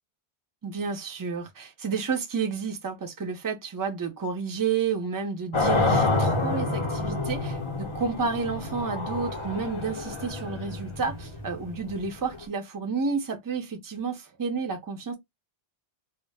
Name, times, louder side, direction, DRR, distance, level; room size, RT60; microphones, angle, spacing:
voice 1, 0.6-15.1, right 5 dB, 30° right, 0.4 m, -31 dB
sound 1, 5.5-12.4, left 2 dB, 45° left, 0.4 m, -28 dB
2.1 x 2.0 x 3.2 m
omnidirectional pair, 1.1 m